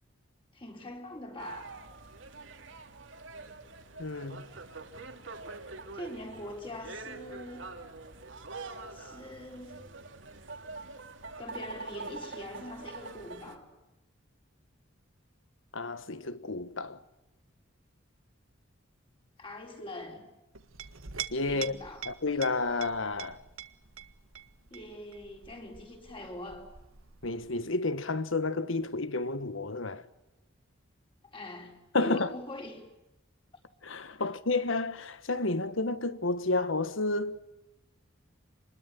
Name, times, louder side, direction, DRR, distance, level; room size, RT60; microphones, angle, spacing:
voice 1, 0.5-1.7 5.9-7.7 8.9-9.8 11.4-13.7 19.4-20.3 21.5-22.0 24.7-26.7 31.3-32.8, left 1 dB, 25° left, 4.7 m, -43 dB
sound 1, 1.4-13.5, right 3 dB, 65° right, 2.6 m, -45 dB
voice 2, 4.0-4.5 15.7-17.0 21.3-21.8 22.0-23.4 27.2-30.1 31.9-32.3 33.8-37.4, left 3 dB, 75° left, 1.4 m, -31 dB
Chink clink, 20.5-27.7, right 8 dB, 90° right, 1.6 m, -45 dB
26.5 x 21.0 x 8.5 m
head